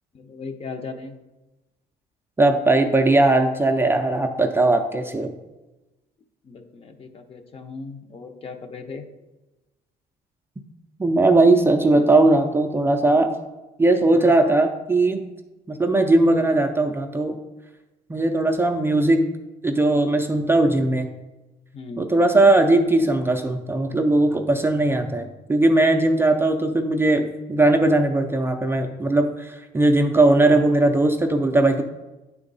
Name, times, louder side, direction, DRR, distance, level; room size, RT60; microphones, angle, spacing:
voice 1, 0.1-1.2 6.4-9.1 21.7-22.1, left 4 dB, 35° left, 6 dB, 0.7 m, -37 dB
voice 2, 2.4-5.3 11.0-13.3 13.8-15.3 15.7-17.4 18.1-19.3 19.6-21.1 22.0-31.8, right 2 dB, 15° right, 4 dB, 0.4 m, -19 dB
8.6 x 3.6 x 4.0 m, 1.1 s
cardioid pair, 110°, 17 cm